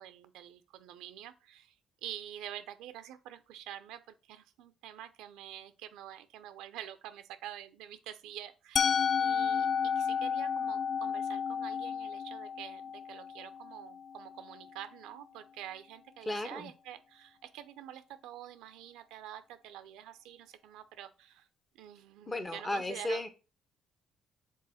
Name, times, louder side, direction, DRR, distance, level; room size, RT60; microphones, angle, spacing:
voice 1, 0.0-1.7 2.0-8.9 9.2-21.5 21.7-23.2, right 11 dB, 85° right, 0.6 m, -47 dB
Musical instrument, 8.8-14.7, left 7 dB, 50° left, 0.3 m, -32 dB
voice 2, 16.3-16.7 22.3-23.3, left 1 dB, 25° left, 1.1 m, -34 dB
6.4 x 3.6 x 4.1 m
supercardioid pair, 75°, 0 cm